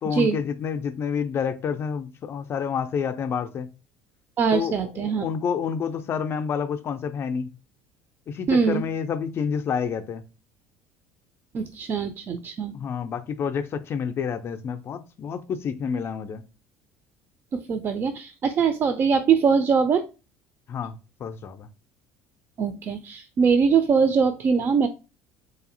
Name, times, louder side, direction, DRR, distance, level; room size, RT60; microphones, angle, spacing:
voice 1, 0.0-3.7 4.5-7.5 8.3-10.2 12.7-16.4 20.7-21.7, left 6 dB, 35° left, 0.4 m, -29 dB
voice 2, 4.4-5.2 8.5-8.8 11.5-12.7 17.5-20.1 22.6-24.9, right 6 dB, 35° right, 0.4 m, -22 dB
4.1 x 2.6 x 2.5 m
figure-of-eight pair, 60°, 7 cm